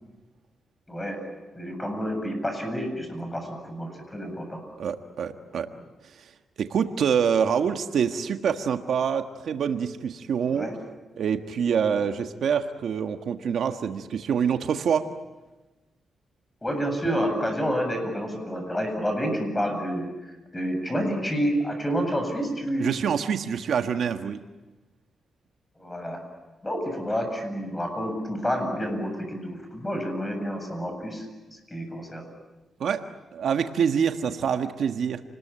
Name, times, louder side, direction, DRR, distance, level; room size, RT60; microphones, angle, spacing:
voice 1, 0.9-1.3 1.5-4.6 10.5-10.7 16.6-20.0 20.5-22.9 25.8-26.2 26.6-31.2 31.7-32.2, equal, 15° left, 5 dB, 7.9 m, -29 dB
voice 2, 4.8-5.7 6.1-6.3 6.6-10.7 11.2-15.1 22.8-24.5 32.8-35.2, right 7 dB, 75° right, 6 dB, 1.5 m, -26 dB
29.5 x 20.5 x 8.9 m, 1.1 s
cardioid pair, 95°, 0 cm